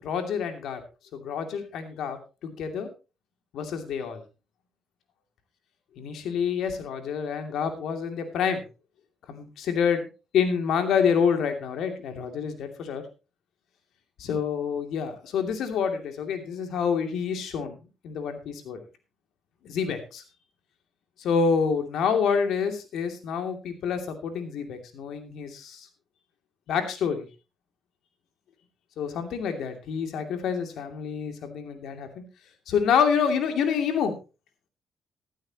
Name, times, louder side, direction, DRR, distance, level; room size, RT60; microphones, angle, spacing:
voice 1, 0.0-0.8 1.1-2.9 3.5-4.2 6.0-8.6 9.3-10.0 10.3-13.0 14.2-17.7 18.0-18.8 19.6-20.2 21.2-25.9 26.7-27.3 29.0-32.1 32.7-34.1, left 6 dB, 75° left, 6 dB, 2.7 m, -27 dB
15.0 x 12.0 x 3.0 m, 0.30 s
cardioid pair, 90°, 0 cm